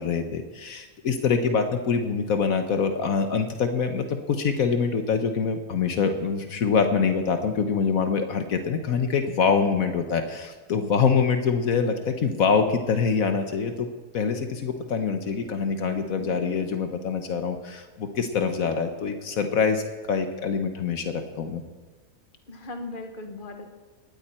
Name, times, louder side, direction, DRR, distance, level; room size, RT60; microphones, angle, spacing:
voice 1, 0.0-13.9 14.1-19.8 20.1-21.6, left 5 dB, 75° left, 6 dB, 1.4 m, -25 dB
voice 2, 22.5-23.7, left 2 dB, 35° left, 4 dB, 1.7 m, -38 dB
18.5 x 13.5 x 4.4 m, 1.3 s
omnidirectional pair, 1.5 m